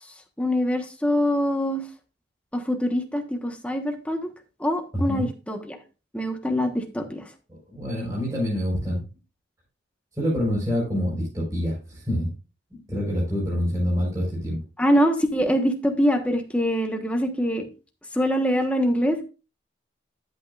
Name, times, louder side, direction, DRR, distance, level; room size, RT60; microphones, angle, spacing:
voice 1, 0.4-1.8 2.5-4.3 4.6-5.8 6.1-7.2 14.8-17.6 18.1-19.2, equal, 5° left, 4 dB, 1.2 m, -24 dB
voice 2, 4.9-5.3 7.5-9.1 10.2-12.3 12.7-14.6, equal, 20° right, -5 dB, 4.6 m, -26 dB
12.0 x 8.2 x 2.4 m, 0.32 s
head